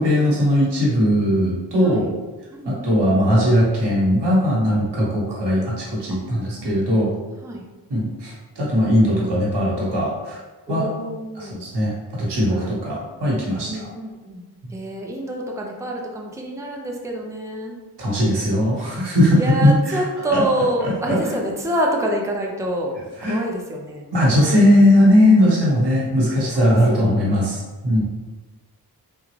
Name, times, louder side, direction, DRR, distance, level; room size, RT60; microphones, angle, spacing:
voice 1, 0.0-2.1 2.6-7.1 7.9-10.4 10.7-10.9 11.3-13.9 18.0-20.0 20.3-20.4 20.8-21.2 23.2-23.4 24.1-28.0, equal, 85° right, -5 dB, 1.2 m, -19 dB
voice 2, 2.5-3.0 6.1-6.9 7.4-7.7 10.7-11.6 12.5-12.7 13.7-14.4 14.7-17.7 19.3-23.0 23.2-24.1 26.5-27.6, right 1 dB, 10° right, 0 dB, 0.5 m, -27 dB
3.6 x 2.3 x 3.2 m, 1.2 s
cardioid pair, 50°, 40 cm